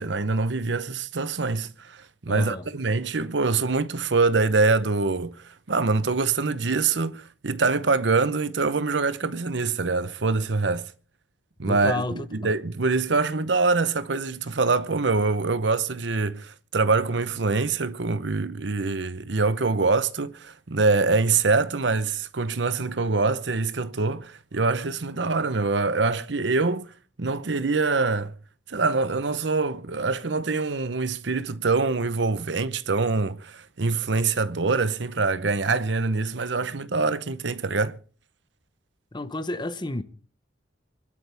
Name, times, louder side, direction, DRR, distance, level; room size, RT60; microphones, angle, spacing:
voice 1, 0.0-10.9 11.6-26.9 27.2-28.3 28.7-38.0, right 3 dB, 75° right, 0.9 m, -24 dB
voice 2, 2.3-2.7 11.7-12.3 39.1-40.0, left 2 dB, 25° left, 1.0 m, -30 dB
26.0 x 12.0 x 3.5 m
head